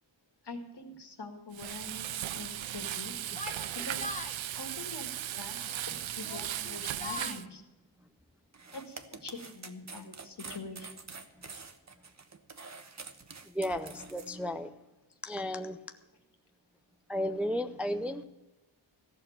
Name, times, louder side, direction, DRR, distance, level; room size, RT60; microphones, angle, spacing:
voice 1, 0.4-3.4 3.7-4.1 4.5-7.6 8.7-11.1, left 2 dB, 55° left, 5 dB, 2.1 m, -45 dB
Frying (food), 1.5-7.4, right 12 dB, 75° right, 0.6 m, -37 dB
Yell, 3.3-4.4 5.4-5.8 6.2-7.4, left 3 dB, 15° left, 1.3 m, -42 dB
sound 1, 8.5-14.3, right 4 dB, 35° right, 1.1 m, -47 dB
voice 2, 13.5-14.8 15.2-15.8 17.1-18.2, equal, 5° right, 8 dB, 0.5 m, -33 dB
15.0 x 6.6 x 8.7 m, 1.0 s
wide cardioid pair, 105°, 47 cm